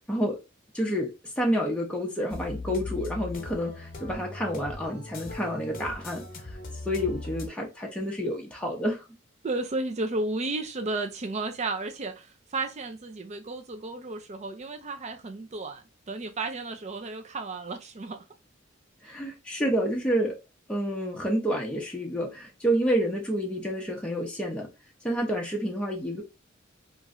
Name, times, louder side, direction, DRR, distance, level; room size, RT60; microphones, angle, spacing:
voice 1, 0.7-6.6 6.8-9.0 19.0-20.4 20.7-24.7 25.0-26.2, equal, 5° left, 0.6 m, -29 dB
sound 1, 2.3-7.5, left 2 dB, 45° left, 0.7 m, -39 dB
voice 2, 9.4-12.3 12.5-18.2, right 2 dB, 35° right, 0.5 m, -33 dB
3.0 x 2.5 x 2.4 m
head